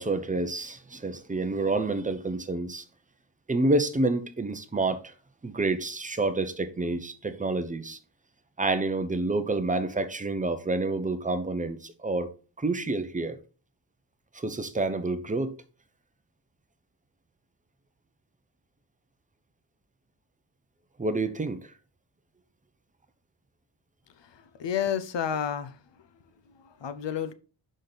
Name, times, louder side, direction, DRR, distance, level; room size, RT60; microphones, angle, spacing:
voice 1, 0.0-2.8 3.5-5.0 5.4-8.0 8.6-12.3 12.6-13.4 14.3-15.6 21.0-21.6, right 2 dB, 20° right, 0.6 m, -28 dB
voice 2, 24.2-25.8 26.6-27.3, left 8 dB, 70° left, 0.8 m, -31 dB
6.1 x 5.1 x 4.0 m
wide cardioid pair, 155°, 44 cm